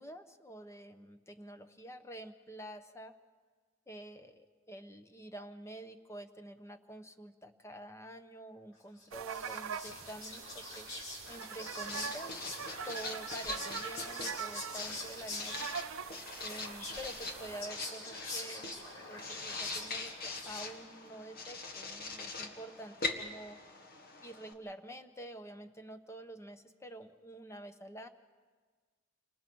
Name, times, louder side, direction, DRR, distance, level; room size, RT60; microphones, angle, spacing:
voice 1, 0.0-3.1 3.9-10.9 11.3-12.5 12.8-15.7 16.4-23.6 24.2-28.1, right 1 dB, 15° left, 8 dB, 1.0 m, -48 dB
Whispering, 9.0-20.9, left 2 dB, 85° left, 6.0 m, -45 dB
sound 1, 9.1-17.6, right 7 dB, 85° right, 0.7 m, -43 dB
Writing, 11.3-24.5, left 3 dB, 50° left, 1.7 m, -43 dB
29.5 x 25.5 x 4.7 m, 1.5 s
head